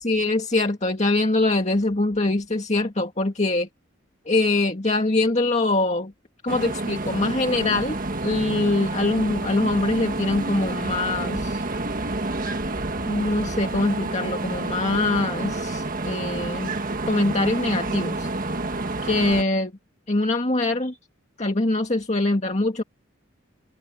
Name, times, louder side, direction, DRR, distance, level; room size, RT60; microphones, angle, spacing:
voice 1, 0.0-3.7 4.3-6.1 6.4-11.7 13.1-16.7 17.1-18.3 19.0-19.7 20.1-21.0 21.4-22.8, left 2 dB, 35° left, 2.0 m, -23 dB
sound 1, 6.5-19.4, right 2 dB, 45° right, 1.6 m, -29 dB
open air
head